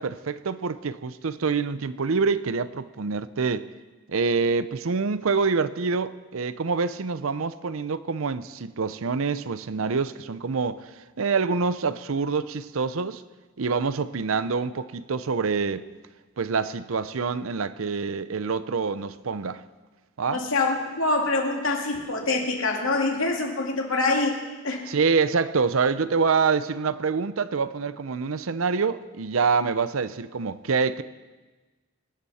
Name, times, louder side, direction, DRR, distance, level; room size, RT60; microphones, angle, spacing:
voice 1, 0.0-3.7 4.1-13.2 13.6-15.9 16.4-19.6 20.2-20.4 24.9-31.0, right 5 dB, 75° right, 0.6 m, -26 dB
voice 2, 20.3-24.4 24.6-24.9, left 3 dB, 75° left, 2.5 m, -25 dB
26.0 x 12.0 x 4.3 m
head